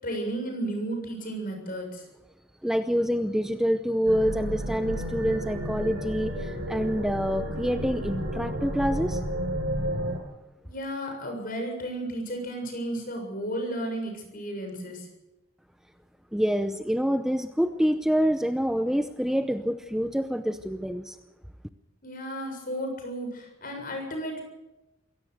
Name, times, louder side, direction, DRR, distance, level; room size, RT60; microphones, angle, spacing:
voice 1, 0.0-2.1 10.6-15.1 22.0-24.4, right 1 dB, 45° left, 4 dB, 7.1 m, -33 dB
voice 2, 2.6-9.2 16.3-21.2, equal, 5° right, 8 dB, 0.7 m, -26 dB
sound 1, 4.1-10.2, equal, 85° right, 6.4 m, -32 dB
23.0 x 17.5 x 6.5 m, 0.97 s
head